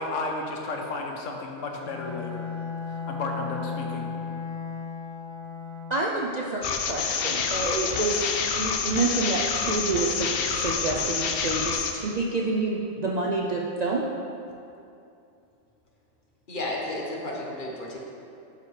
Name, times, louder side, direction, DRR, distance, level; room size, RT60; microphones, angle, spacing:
voice 1, 0.0-2.4 2.9-4.1, left 2 dB, 80° left, 1 dB, 1.2 m, -33 dB
Bowed string instrument, 1.8-6.1, left 6 dB, 85° right, 1.8 m, -35 dB
voice 2, 5.9-14.0, right 3 dB, 50° right, -3 dB, 0.5 m, -28 dB
sound 1, 6.6-11.9, left 6 dB, 60° left, 0.7 m, -27 dB
voice 3, 16.5-18.0, left 1 dB, 45° left, -2 dB, 1.2 m, -32 dB
11.5 x 5.0 x 3.2 m, 2.7 s
omnidirectional pair, 1.3 m